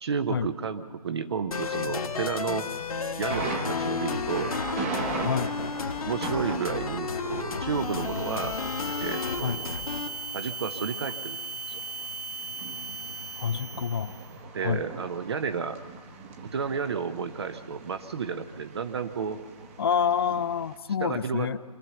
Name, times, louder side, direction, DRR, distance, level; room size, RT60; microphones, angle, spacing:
voice 1, 0.0-2.7 3.2-4.5 5.1-5.5 6.0-8.6 9.0-9.7 10.3-11.4 11.7-11.8 14.5-15.8 16.5-19.4 21.0-21.5, right 6 dB, 40° right, 9 dB, 0.8 m, -32 dB
sound 1, 1.5-10.1, left 5 dB, 65° left, 1.6 m, -32 dB
Thunder, 3.3-20.8, right 4 dB, 20° right, 1.1 m, -40 dB
voice 2, 5.2-5.5 9.4-9.6 13.4-14.1 14.6-14.8 19.8-21.6, left 7 dB, 40° left, 16 dB, 0.5 m, -27 dB
sound 2, 7.7-14.3, right 4 dB, 75° right, 0.8 m, -38 dB
24.5 x 15.5 x 7.0 m, 1.5 s
figure-of-eight pair, 155°, 20 cm